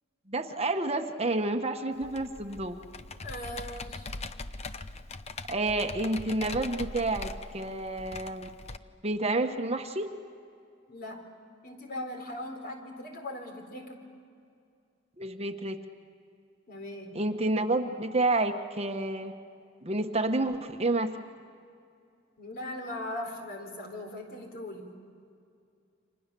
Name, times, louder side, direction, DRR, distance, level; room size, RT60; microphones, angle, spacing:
voice 1, 0.3-2.8 5.5-8.5 9.0-10.1 15.2-15.8 17.1-19.3 19.8-21.2, right 2 dB, 35° right, 6 dB, 1.2 m, -29 dB
Computer keyboard, 2.0-8.8, left 3 dB, 35° left, 0.8 m, -41 dB
voice 2, 3.2-4.1 10.9-11.3 11.6-14.0 16.7-17.2 22.4-24.9, left 1 dB, 50° left, 3 dB, 4.1 m, -39 dB
30.0 x 26.0 x 6.9 m, 2.4 s
head